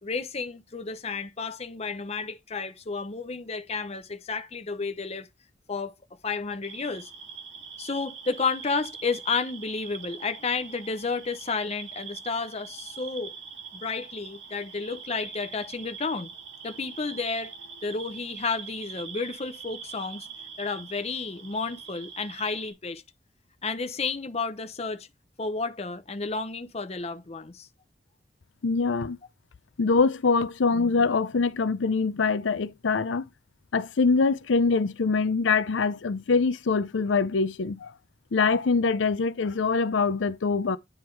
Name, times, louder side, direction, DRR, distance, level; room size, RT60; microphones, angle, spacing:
voice 1, 0.0-5.3 5.7-5.9 6.2-7.1 7.8-13.3 13.7-16.3 16.6-17.5 17.8-20.3 20.6-23.0 23.6-25.1 25.4-27.7, left 4 dB, 35° left, 0.7 m, -31 dB
sound 1, 6.6-22.7, right 6 dB, 75° right, 2.0 m, -43 dB
voice 2, 28.6-29.2 29.8-33.2 33.7-37.9 38.3-40.8, left 4 dB, 90° left, 0.6 m, -24 dB
9.6 x 3.5 x 4.5 m
head